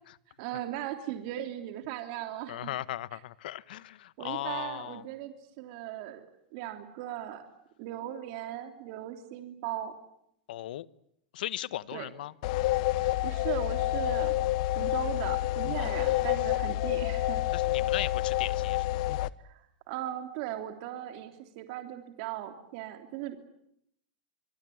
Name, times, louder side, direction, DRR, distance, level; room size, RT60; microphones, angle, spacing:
voice 1, 0.4-2.7 3.1-3.2 4.2-6.2 6.5-7.4 7.8-9.9 11.9-12.1 12.9-14.3 14.7-17.4 19.4-19.6 19.9-23.5, right 12 dB, 50° right, 7 dB, 3.2 m, -38 dB
voice 2, 2.5-5.0 10.5-10.9 11.3-12.3 15.8-16.3 17.5-19.1, left 13 dB, 75° left, 18 dB, 1.2 m, -37 dB
sound 1, 12.4-19.3, left 16 dB, 55° left, 1.0 m, -28 dB
25.5 x 23.0 x 9.3 m, 0.75 s
supercardioid pair, 155°, 5 cm